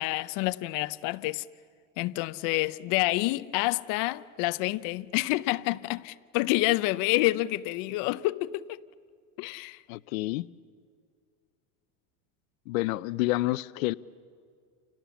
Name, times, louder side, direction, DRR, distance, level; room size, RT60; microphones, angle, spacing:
voice 1, 0.0-1.4 2.0-8.8 9.4-9.8, left 19 dB, 55° left, 0.8 m, -28 dB
voice 2, 9.9-10.5 12.7-13.9, left 19 dB, 90° left, 0.7 m, -28 dB
30.0 x 28.0 x 7.1 m
supercardioid pair, 155°, 40 cm